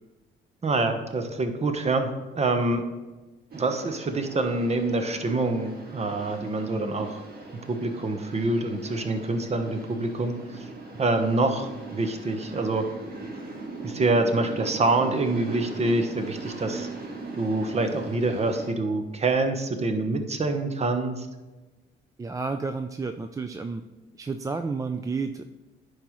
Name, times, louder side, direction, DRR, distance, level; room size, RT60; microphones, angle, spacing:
voice 1, 0.6-2.1 2.3-2.8 3.5-7.2 7.7-10.7 11.0-12.8 13.8-16.9 17.4-21.3, right 2 dB, 35° right, 7 dB, 1.0 m, -26 dB
sound 1, 3.5-18.7, right 3 dB, 50° right, 1.7 m, -39 dB
voice 2, 22.2-23.8 24.2-25.4, right 4 dB, 15° right, 7 dB, 0.3 m, -31 dB
10.5 x 4.8 x 3.1 m, 1.2 s
cardioid pair, 90°, 20 cm